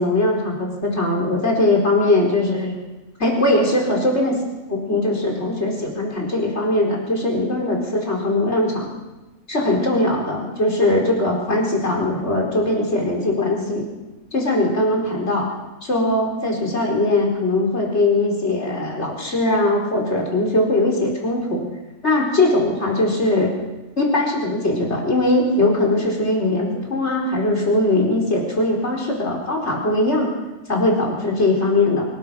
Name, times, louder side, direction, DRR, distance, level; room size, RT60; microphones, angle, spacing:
voice 1, 0.0-2.7 3.2-4.4 4.7-8.9 9.5-13.8 14.3-15.5 15.8-21.6 22.0-23.5 24.0-30.3 30.7-32.0, left 2 dB, 60° left, 0 dB, 5.1 m, -20 dB
25.5 x 21.5 x 5.9 m, 1.1 s
omnidirectional pair, 1.3 m